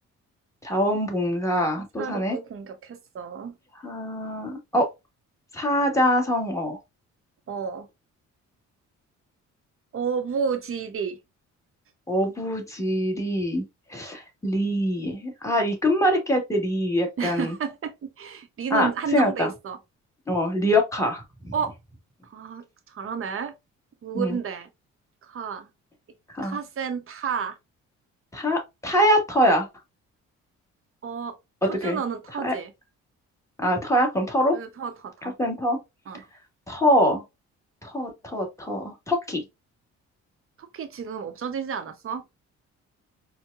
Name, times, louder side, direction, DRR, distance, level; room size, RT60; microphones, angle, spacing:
voice 1, 0.6-2.4 3.8-4.9 5.5-6.8 12.1-13.6 13.9-17.5 18.7-19.5 20.3-21.5 24.1-24.4 26.3-26.6 28.3-29.7 31.8-32.0 32.4-32.5 33.6-34.6 35.2-35.8 36.7-37.2 37.8-39.4, equal, 10° left, 1.5 m, -24 dB
voice 2, 2.0-3.5 7.5-7.9 9.9-11.2 17.2-19.8 21.5-21.8 22.2-23.6 24.0-24.7 25.2-25.7 26.4-27.6 31.0-31.4 31.6-32.7 34.5-35.4 36.1-36.3 40.6-42.2, right 6 dB, 45° right, 0.8 m, -31 dB
4.5 x 2.2 x 2.3 m
cardioid pair, 90°, 30 cm